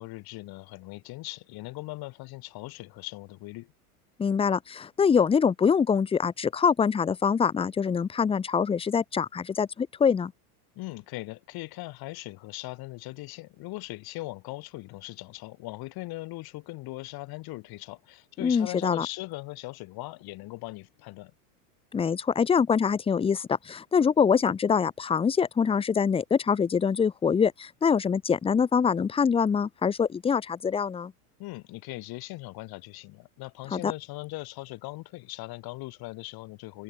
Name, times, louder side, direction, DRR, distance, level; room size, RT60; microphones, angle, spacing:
voice 1, 0.0-3.7 10.8-21.3 31.4-36.8, left 20 dB, 50° left, 4.1 m, -39 dB
voice 2, 4.2-10.3 18.4-19.1 21.9-31.1 33.7-33.9, left 6 dB, 10° left, 0.6 m, -24 dB
open air
supercardioid pair, 110°, 46 cm